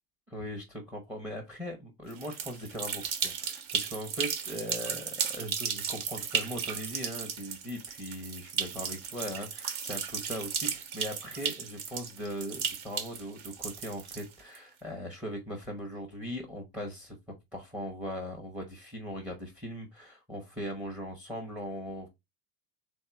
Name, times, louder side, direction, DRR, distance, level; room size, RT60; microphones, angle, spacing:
voice 1, 0.3-17.2 17.5-22.1, equal, 5° right, 0.8 m, -39 dB
sound 1, 2.1-14.6, right 7 dB, 55° right, 1.3 m, -35 dB
3.5 x 3.5 x 4.4 m
supercardioid pair, 150°, 46 cm